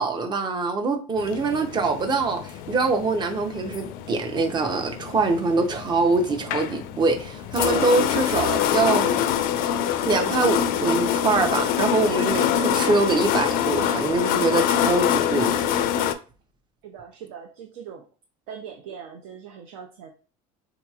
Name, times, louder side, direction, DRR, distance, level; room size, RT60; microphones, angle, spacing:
voice 1, 0.0-9.1 10.1-15.5, right 3 dB, 25° right, 0.6 m, -24 dB
sound 1, 1.2-16.1, left 9 dB, 60° left, 0.4 m, -25 dB
voice 2, 16.8-18.0 18.5-20.1, right 7 dB, 75° right, 0.5 m, -41 dB
3.9 x 2.9 x 2.3 m
supercardioid pair, 120°, 17 cm